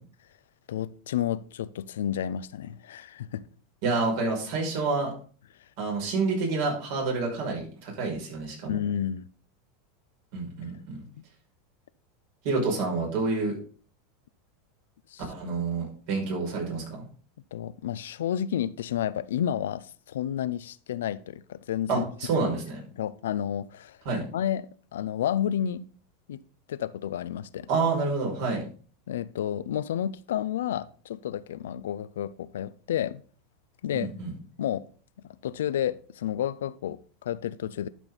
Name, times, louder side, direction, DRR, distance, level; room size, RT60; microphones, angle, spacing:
voice 1, 0.7-3.4 8.7-9.3 15.1-15.2 17.5-22.0 23.0-24.0 24.3-25.9 26.3-26.4 26.7-27.7 29.1-33.2 33.8-34.1 34.6-34.8 35.2-37.9, left 10 dB, 85° left, 0.5 m, -31 dB
voice 2, 3.8-5.1 5.8-8.8 10.3-11.0 12.4-13.6 15.3-17.0 21.9-22.8 24.0-24.2 27.7-28.6 33.9-34.3, right 3 dB, 65° right, 5.7 m, -28 dB
12.0 x 6.1 x 4.0 m
supercardioid pair, 115°, 0 cm